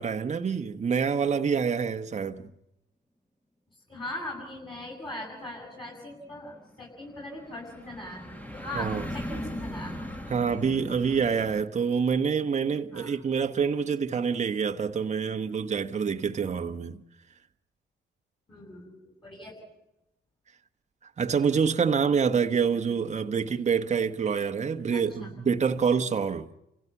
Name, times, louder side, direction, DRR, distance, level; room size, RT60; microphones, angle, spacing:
voice 1, 0.0-2.5 8.7-9.0 10.3-17.0 21.2-26.5, right 6 dB, 35° right, 1.2 m, -26 dB
voice 2, 3.9-10.1 12.9-13.2 18.5-19.5 24.9-25.3, left 1 dB, 25° left, 7.9 m, -40 dB
sound 1, 5.3-11.7, equal, 10° left, 1.8 m, -39 dB
30.0 x 16.0 x 7.1 m
cardioid pair, 90°, 20 cm